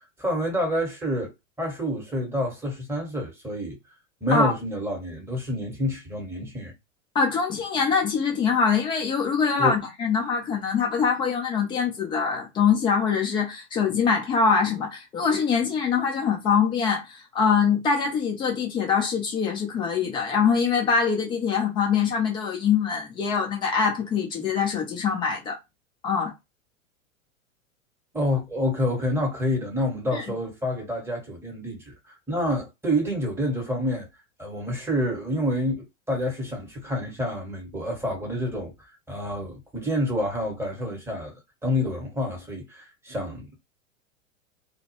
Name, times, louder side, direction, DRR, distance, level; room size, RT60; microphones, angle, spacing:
voice 1, 0.2-3.8 4.2-6.7 9.6-9.7 28.1-34.1 34.4-41.3 41.6-43.6, left 1 dB, 5° right, 0.9 m, -28 dB
voice 2, 7.1-25.6 26.0-26.3 30.1-30.2, left 6 dB, 10° left, 0.4 m, -24 dB
2.3 x 2.0 x 2.8 m
figure-of-eight pair, 95°, 40 cm